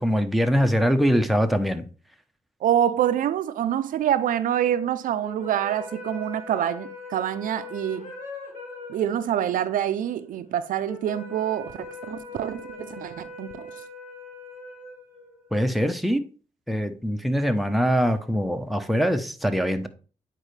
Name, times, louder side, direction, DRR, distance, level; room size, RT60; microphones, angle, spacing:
voice 1, 0.0-1.8 15.5-16.2 16.7-19.9, equal, ahead, 0.8 m, -23 dB
voice 2, 2.6-8.1 8.9-11.8 12.1-13.7, right 10 dB, 85° right, 0.5 m, -26 dB
sound 1, 5.2-15.6, left 3 dB, 85° left, 2.5 m, -41 dB
9.0 x 4.4 x 3.3 m
cardioid pair, 75°, 13 cm